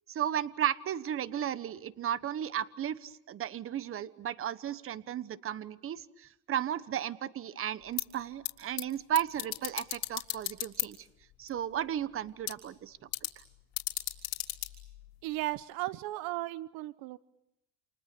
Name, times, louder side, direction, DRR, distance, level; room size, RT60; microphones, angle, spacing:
voice 1, 0.1-11.1 11.4-13.1 13.4-13.5, right 10 dB, 35° right, 15 dB, 1.2 m, -34 dB
sound 1, 7.8-15.6, left 18 dB, 70° left, 3.7 m, -39 dB
voice 2, 15.2-17.2, right 18 dB, 70° right, 16 dB, 1.0 m, -35 dB
29.5 x 28.0 x 6.9 m, 0.85 s
cardioid pair, 120°, 37 cm